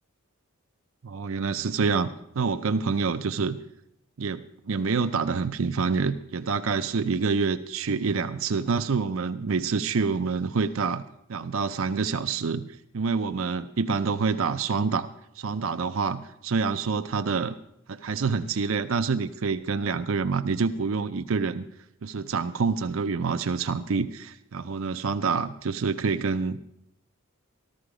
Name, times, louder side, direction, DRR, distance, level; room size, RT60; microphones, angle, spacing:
voice 1, 1.0-2.1 2.4-3.6 4.2-11.0 11.3-12.7 12.9-15.1 15.4-17.6 17.9-21.6 22.0-26.6, right 5 dB, 65° right, 9 dB, 0.5 m, -27 dB
14.0 x 13.0 x 4.9 m, 0.81 s
head